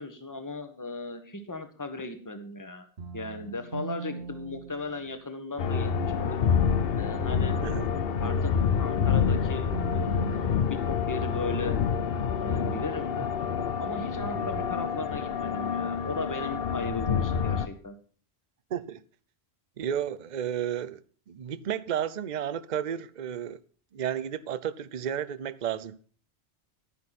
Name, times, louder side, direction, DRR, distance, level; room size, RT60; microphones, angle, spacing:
voice 1, 0.0-2.9 3.1-6.4 6.9-8.5 8.8-10.5 10.9-11.8 12.4-13.3 13.8-17.9, left 2 dB, 15° left, 1.5 m, -37 dB
sound 1, 3.0-5.2 5.7-6.5 7.2-11.3 11.7-12.5 13.2-15.0, right 4 dB, 65° right, 1.5 m, -42 dB
sound 2, 5.6-17.7, left 7 dB, 60° left, 0.9 m, -27 dB
voice 2, 18.7-19.0 19.8-21.0 21.3-23.6 23.9-26.0, right 9 dB, 45° right, 0.7 m, -32 dB
11.0 x 10.5 x 4.2 m
omnidirectional pair, 1.2 m